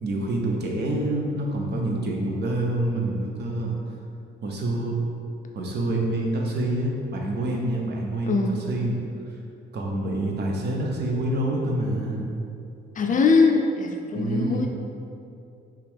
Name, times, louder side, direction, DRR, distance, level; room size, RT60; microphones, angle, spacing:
voice 1, 0.0-3.7 4.4-5.0 5.5-9.0 9.7-12.2 14.1-14.7, right 1 dB, 55° right, -1 dB, 0.8 m, -27 dB
voice 2, 8.3-8.6 13.0-14.7, left 4 dB, 40° left, 2 dB, 0.5 m, -21 dB
5.8 x 2.4 x 3.5 m, 2.6 s
cardioid pair, 90°, 20 cm